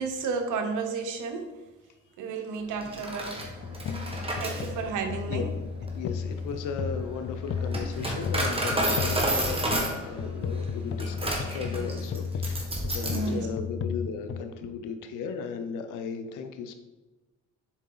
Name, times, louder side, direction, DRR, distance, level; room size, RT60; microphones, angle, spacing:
voice 1, 0.0-1.5 2.2-3.5 4.4-5.5 13.0-13.5, right 4 dB, 85° right, 5 dB, 1.0 m, -32 dB
Coin (dropping), 2.8-13.3, right 1 dB, 20° right, 1.6 m, -31 dB
sound 1, 3.4-14.4, left 6 dB, 45° left, 0.4 m, -34 dB
voice 2, 5.9-9.6 10.0-16.7, left 5 dB, 90° left, 8 dB, 0.7 m, -36 dB
7.2 x 4.6 x 3.9 m, 1.1 s
cardioid pair, 90°, 30 cm